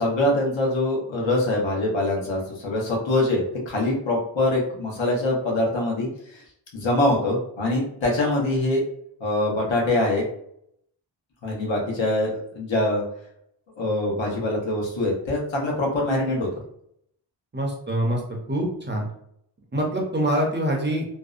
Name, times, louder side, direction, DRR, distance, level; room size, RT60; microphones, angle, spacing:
voice 1, 0.0-6.4 6.7-8.8 9.2-10.2 11.4-13.0 13.8-16.5, left 1 dB, 80° left, -2 dB, 0.9 m, -24 dB
voice 2, 17.5-18.2 18.5-19.1 19.7-21.0, right 1 dB, 25° right, -1 dB, 0.5 m, -24 dB
2.6 x 2.0 x 2.4 m, 0.70 s
wide cardioid pair, 135°, 45 cm